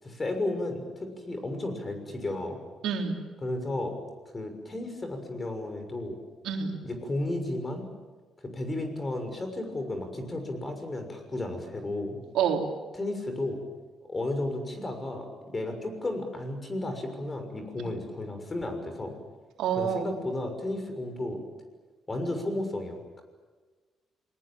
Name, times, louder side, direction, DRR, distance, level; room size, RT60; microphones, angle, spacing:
voice 1, 0.0-2.6 3.4-3.9 4.3-6.2 6.8-7.9 8.4-12.2 12.9-13.6 14.1-19.1 19.8-21.4 22.1-23.2, left 2 dB, 25° left, 6 dB, 6.4 m, -33 dB
voice 2, 2.8-3.2 6.4-6.8 12.3-12.6 19.6-20.1, right 7 dB, 85° right, 2 dB, 3.5 m, -27 dB
27.5 x 20.0 x 9.1 m, 1.3 s
cardioid pair, 90°, 0 cm